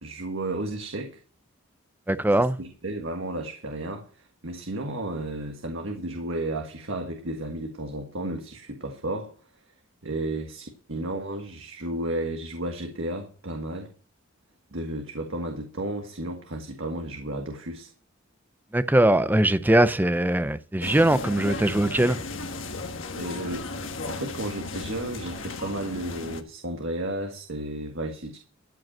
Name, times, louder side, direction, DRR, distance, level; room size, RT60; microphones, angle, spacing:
voice 1, 0.0-1.2 2.4-9.3 10.0-13.9 14.7-17.9 22.8-28.4, right 1 dB, 75° right, 1.6 m, -33 dB
voice 2, 2.1-2.6 18.7-22.2, right 1 dB, 10° right, 0.5 m, -21 dB
sound 1, 20.8-26.4, left 3 dB, 70° left, 1.4 m, -35 dB
13.5 x 5.3 x 7.4 m
head